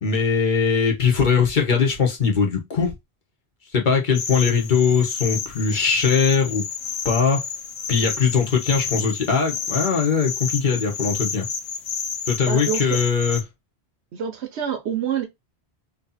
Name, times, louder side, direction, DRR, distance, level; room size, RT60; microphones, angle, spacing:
voice 1, 0.0-2.9 3.7-6.6 7.0-7.4 7.9-11.5 12.3-13.4, left 5 dB, 45° left, 1.3 m, -20 dB
sound 1, 4.1-13.4, left 6 dB, 70° left, 0.9 m, -30 dB
voice 2, 12.5-13.0 14.1-15.2, right 8 dB, 85° right, 1.1 m, -26 dB
3.2 x 2.9 x 4.1 m
omnidirectional pair, 1.1 m